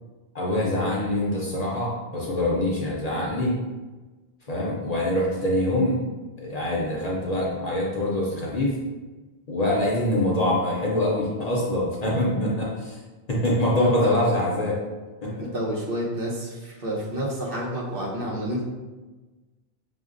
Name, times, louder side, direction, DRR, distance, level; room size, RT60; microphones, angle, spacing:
voice 1, 0.3-3.6 4.5-6.1 6.4-8.7 9.5-12.7 13.3-14.8 15.2-15.5, left 1 dB, 45° left, -4 dB, 0.7 m, -24 dB
voice 2, 12.0-12.5 13.8-14.2 15.4-18.6, equal, 60° right, -5 dB, 1.0 m, -30 dB
6.0 x 2.0 x 2.5 m, 1.2 s
omnidirectional pair, 1.1 m